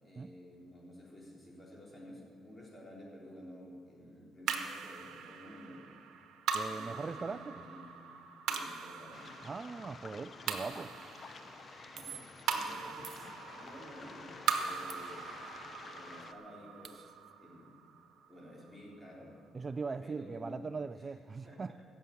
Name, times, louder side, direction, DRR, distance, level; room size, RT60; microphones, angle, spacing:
voice 1, 0.0-5.8 6.7-8.0 8.5-9.4 10.4-10.8 11.6-13.1 13.5-15.6 16.0-17.1 17.4-17.8 18.3-19.4 20.0-20.6 20.9-21.2 21.4-21.8, equal, 20° left, -3 dB, 3.9 m, -52 dB
Water drips in the cave HQ, 4.5-19.0, right 6 dB, 80° right, 1.2 m, -41 dB
voice 2, 6.5-7.6 9.4-10.9 19.5-21.7, right 4 dB, 35° right, 11 dB, 0.3 m, -40 dB
Waves surf, 9.1-16.3, left 5 dB, 45° left, 0.8 m, -51 dB
sound 1, 12.0-12.5 13.0-13.9 14.9-15.8 16.1-16.2 16.4-17.3, right 8 dB, 55° right, 0.8 m, -52 dB
15.0 x 7.1 x 8.6 m, 2.3 s
cardioid pair, 90°, 0 cm